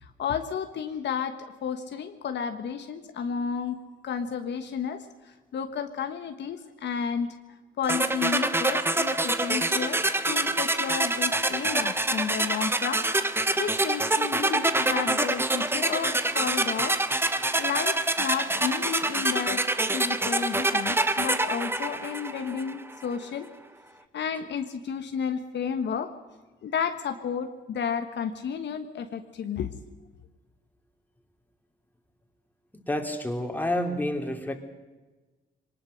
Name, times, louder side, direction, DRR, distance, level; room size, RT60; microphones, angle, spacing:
voice 1, 0.0-3.8 4.0-5.1 5.5-7.3 7.8-10.0 10.2-17.0 17.6-19.7 19.9-23.5 24.1-26.1 26.6-29.7, left 7 dB, 65° left, 7 dB, 1.4 m, -32 dB
sound 1, 7.9-22.8, right 2 dB, 10° right, 1.1 m, -26 dB
voice 2, 32.7-34.6, left 1 dB, 10° left, 4 dB, 3.1 m, -29 dB
22.0 x 19.0 x 6.5 m, 1.2 s
cardioid pair, 90°, 20 cm